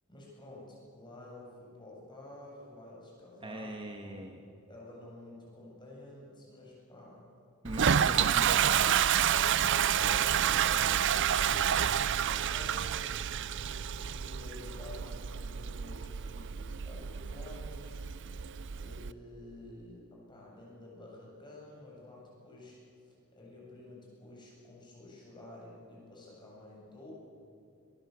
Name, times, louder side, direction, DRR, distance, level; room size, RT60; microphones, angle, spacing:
voice 1, 0.1-3.7 4.0-4.3 4.7-7.2 7.7-7.9 9.2-13.1 13.9-18.0 18.8-27.1, left 2 dB, 20° left, -3 dB, 7.9 m, -50 dB
voice 2, 3.4-4.4 7.6-9.3, right 1 dB, 25° right, 3 dB, 1.5 m, -40 dB
Toilet flush, 7.6-19.1, right 9 dB, 60° right, 0.5 m, -29 dB
22.0 x 19.5 x 8.1 m, 2.4 s
head